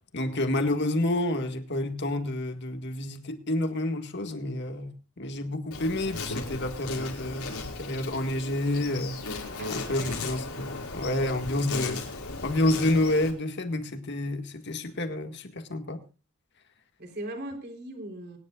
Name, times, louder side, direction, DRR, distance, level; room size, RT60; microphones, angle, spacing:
voice 1, 0.1-9.2 9.7-12.1 12.4-16.0, left 1 dB, 50° left, 1.9 m, -29 dB
Insect, 5.7-13.3, left 3 dB, 90° left, 5.4 m, -36 dB
voice 2, 9.6-10.3 17.0-18.4, right 1 dB, 50° right, 3.8 m, -39 dB
24.5 x 10.5 x 2.4 m
head